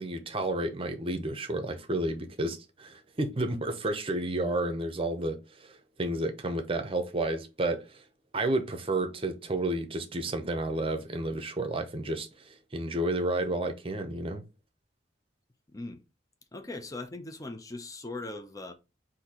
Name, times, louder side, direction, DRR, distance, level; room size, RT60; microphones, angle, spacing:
voice 1, 0.0-8.0 8.3-14.4, right 2 dB, 30° right, 0.7 m, -31 dB
voice 2, 15.7-16.0 16.5-18.7, left 2 dB, 20° left, 0.5 m, -40 dB
4.2 x 2.7 x 4.2 m
head